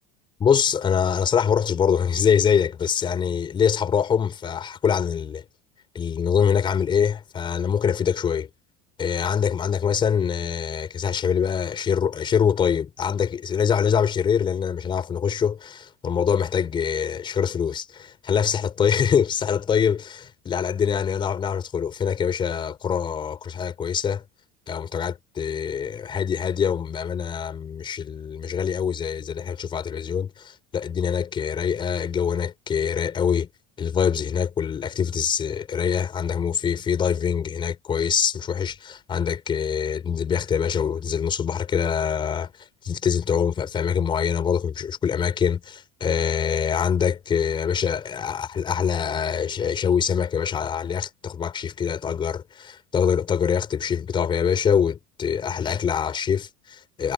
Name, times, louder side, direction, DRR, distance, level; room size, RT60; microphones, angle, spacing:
voice 1, 0.4-5.4 5.9-8.5 9.0-24.2 24.7-33.5 33.8-57.1, left 7 dB, 25° left, 4.9 m, -24 dB
cardioid pair, 160°, 20 cm